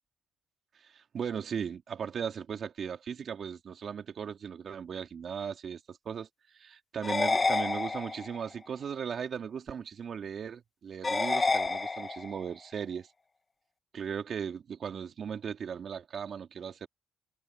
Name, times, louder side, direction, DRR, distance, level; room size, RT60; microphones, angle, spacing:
voice 1, 0.8-13.1 13.9-16.9, right 7 dB, 55° right, 2.9 m, -37 dB
sound 1, 7.0-8.4 11.0-12.4, left 3 dB, 25° left, 1.5 m, -29 dB
cardioid pair, 90°, 0 cm